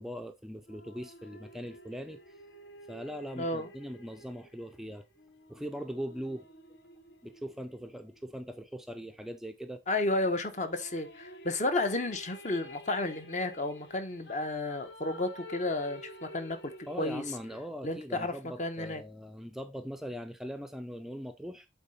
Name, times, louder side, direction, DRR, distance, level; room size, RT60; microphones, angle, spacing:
voice 1, 0.0-2.3 2.9-5.0 5.5-6.5 7.2-9.8 16.9-21.7, equal, ahead, 0.4 m, -41 dB
sound 1, 0.7-8.3 10.2-17.6, equal, 70° left, 1.0 m, -51 dB
voice 2, 3.4-3.7 9.9-16.6 17.0-17.2 17.8-18.3 18.6-19.0, left 2 dB, 40° left, 0.9 m, -32 dB
8.1 x 3.9 x 4.2 m
head